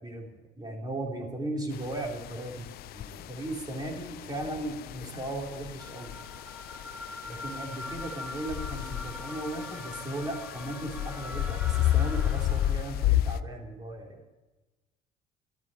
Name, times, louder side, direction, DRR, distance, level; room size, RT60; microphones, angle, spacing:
voice 1, 0.6-2.7 2.9-6.1 7.3-14.2, right 1 dB, 25° right, 1 dB, 3.5 m, -37 dB
sound 1, 1.7-13.4, left 13 dB, 70° left, 0.6 m, -32 dB
sound 2, 5.8-13.0, left 1 dB, 10° right, 2.1 m, -42 dB
12.0 x 9.3 x 10.0 m, 1.2 s
cardioid pair, 105°, 16 cm